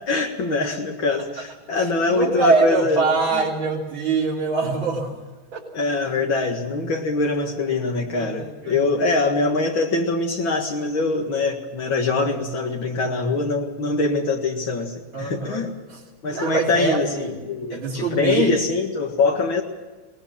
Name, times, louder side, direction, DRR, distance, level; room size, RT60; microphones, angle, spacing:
voice 1, 0.1-3.0 3.3-3.4 5.7-15.8 16.2-19.6, left 3 dB, 75° left, 1 dB, 2.6 m, -23 dB
voice 2, 1.7-5.2 5.5-5.6 8.2-8.8 15.1-15.6 15.9-16.0 16.3-17.4 17.7-18.6, right 3 dB, 75° right, -6 dB, 3.9 m, -23 dB
22.5 x 20.0 x 7.4 m, 1.2 s
omnidirectional pair, 2.2 m